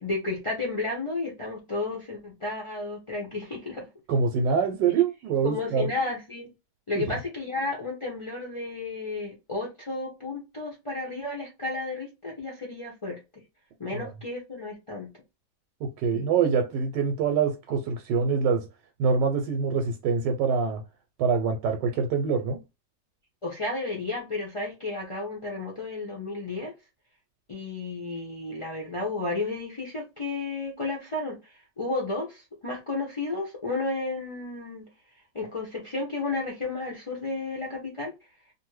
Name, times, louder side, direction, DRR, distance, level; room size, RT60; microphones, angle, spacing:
voice 1, 0.0-3.9 5.4-6.5 6.9-13.2 13.8-15.1 16.1-16.2 23.4-26.7 27.5-34.8 35.3-38.1, left 3 dB, 50° left, 0.3 m, -32 dB
voice 2, 4.1-5.9 13.9-14.0 15.8-18.7 19.0-20.8 21.2-22.6, right 5 dB, 80° right, 1.2 m, -25 dB
2.7 x 2.6 x 3.0 m
omnidirectional pair, 1.9 m